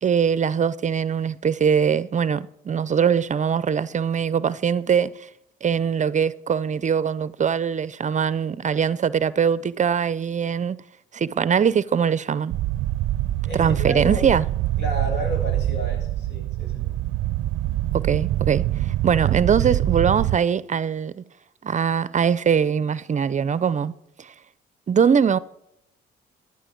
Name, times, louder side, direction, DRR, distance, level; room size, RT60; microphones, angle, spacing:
voice 1, 0.0-5.3 5.6-10.8 11.1-12.6 13.5-14.4 17.9-21.2 21.6-23.9 24.2-24.3 24.9-25.4, right 7 dB, 40° right, 0.6 m, -22 dB
sound 1, 12.5-20.4, right 15 dB, 85° right, 0.5 m, -24 dB
voice 2, 13.4-14.3 14.8-16.9, left 1 dB, 65° left, 7.1 m, -32 dB
15.0 x 10.5 x 5.2 m
cardioid pair, 90°, 20 cm